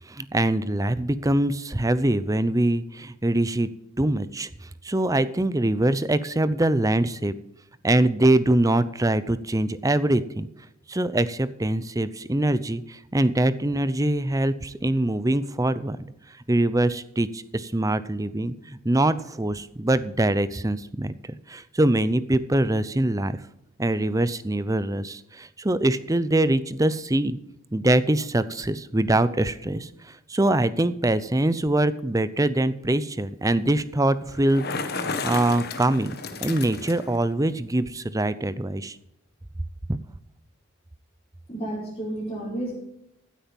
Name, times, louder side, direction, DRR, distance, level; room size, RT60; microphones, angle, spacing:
voice 1, 0.1-3.7 4.0-4.5 4.8-7.3 7.8-10.5 10.9-16.0 16.5-23.4 23.8-27.4 27.7-34.6 34.9-36.1 36.4-39.0, right 1 dB, 15° right, 15 dB, 0.6 m, -23 dB
Bicycle, 34.3-37.2, left 4 dB, 50° left, 1.5 m, -32 dB
voice 2, 41.5-42.8, right 1 dB, 25° left, -8 dB, 5.1 m, -31 dB
15.5 x 8.6 x 5.3 m, 0.83 s
head